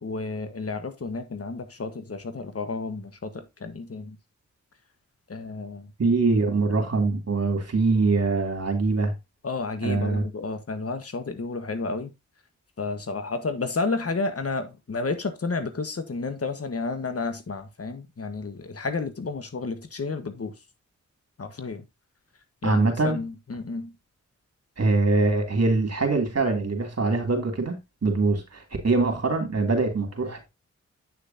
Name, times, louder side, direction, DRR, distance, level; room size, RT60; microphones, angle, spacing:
voice 1, 0.0-4.2 5.3-5.9 9.4-12.1 12.8-20.5 21.4-21.8 22.6-23.9, left 3 dB, 50° left, 1.5 m, -31 dB
voice 2, 6.0-9.1 9.8-10.2 22.6-23.2 24.8-30.5, right 3 dB, 55° right, 3.0 m, -23 dB
8.7 x 6.7 x 2.8 m
cardioid pair, 50°, 30 cm